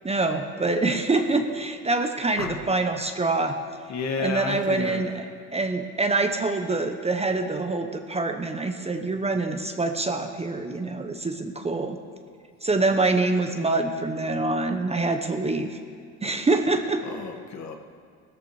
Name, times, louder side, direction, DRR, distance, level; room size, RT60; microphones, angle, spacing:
voice 1, 0.0-3.6 4.2-5.2 5.5-12.0 12.6-15.8 16.2-17.0, right 3 dB, 15° right, 6 dB, 0.9 m, -25 dB
sound 1, 2.3-3.0 4.7-5.0 5.4-5.8, left 7 dB, 90° left, 0.9 m, -40 dB
voice 2, 3.9-5.2 17.1-17.8, left 4 dB, 50° left, 3 dB, 1.6 m, -31 dB
17.0 x 13.5 x 3.2 m, 2.1 s
hypercardioid pair, 70°, 37 cm